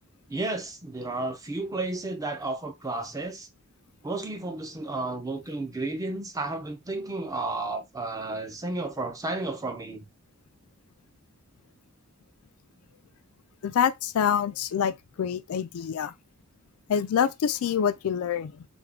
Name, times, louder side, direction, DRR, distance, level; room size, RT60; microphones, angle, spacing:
voice 1, 0.3-3.5 4.0-10.1, right 2 dB, 15° right, 0.5 m, -32 dB
voice 2, 13.6-16.1 16.9-18.7, left 8 dB, 70° left, 0.3 m, -26 dB
3.4 x 2.2 x 3.4 m
head